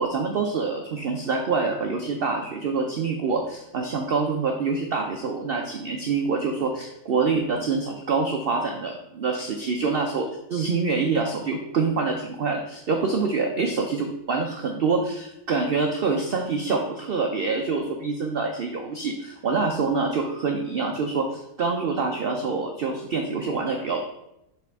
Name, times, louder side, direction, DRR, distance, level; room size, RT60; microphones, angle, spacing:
voice 1, 0.0-24.0, right 4 dB, 65° right, 3 dB, 0.5 m, -26 dB
6.9 x 4.1 x 3.5 m, 0.83 s
omnidirectional pair, 1.7 m